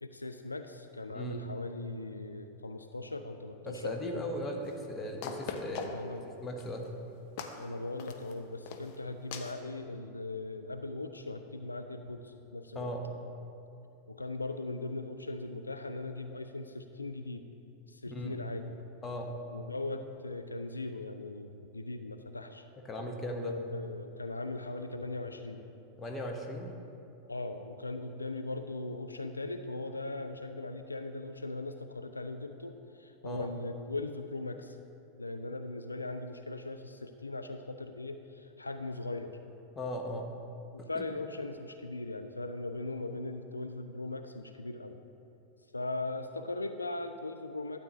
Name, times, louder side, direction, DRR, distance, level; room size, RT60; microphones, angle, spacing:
voice 1, 0.0-4.0 5.8-6.2 7.6-12.9 14.1-17.4 17.9-18.8 19.5-22.6 23.3-25.6 27.3-34.8 35.2-39.4 40.7-45.0 45.7-47.8, left 2 dB, 80° left, 7 dB, 0.3 m, -39 dB
voice 2, 3.6-6.0 6.4-6.9 12.7-13.1 18.1-18.4 19.0-19.3 22.9-23.6 26.0-26.7 33.2-33.5 39.7-40.3, left 1 dB, 15° left, 1 dB, 1.1 m, -37 dB
sound 1, 4.7-4.8 5.2-6.2 6.6-6.9 7.4-7.6 8.0-8.3 8.7-9.0 9.3-9.6, left 6 dB, 45° left, 0.7 m, -40 dB
12.5 x 8.0 x 3.0 m, 2.7 s
figure-of-eight pair, 90°, 0 cm